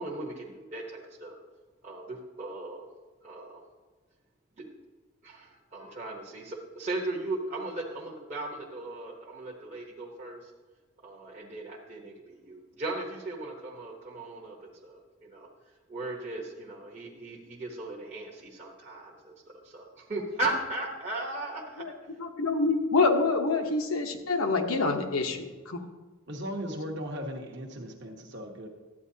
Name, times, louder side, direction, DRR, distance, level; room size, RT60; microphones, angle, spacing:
voice 1, 0.0-1.4 1.8-2.9 3.2-3.6 4.6-4.7 5.2-10.5 11.0-15.5 15.9-21.8, right 2 dB, 30° right, 1.0 m, -37 dB
voice 2, 22.2-25.8, left 3 dB, 75° left, 1.0 m, -26 dB
voice 3, 26.3-28.7, equal, 55° right, 1.2 m, -37 dB
12.5 x 9.2 x 2.8 m
head